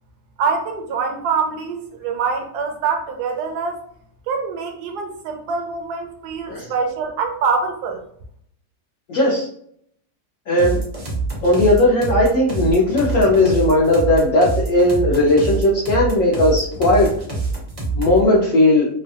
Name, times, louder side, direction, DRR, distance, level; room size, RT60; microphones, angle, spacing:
voice 1, 0.4-3.8 4.3-8.0, right 5 dB, 75° right, 4 dB, 1.2 m, -24 dB
voice 2, 9.1-9.5 10.5-10.8 11.4-17.1 18.0-18.9, left 1 dB, 60° left, -4 dB, 1.0 m, -16 dB
Simple loopable beat, 10.6-18.3, right 3 dB, 35° right, 0.5 m, -25 dB
3.1 x 2.2 x 2.7 m, 0.65 s
omnidirectional pair, 1.8 m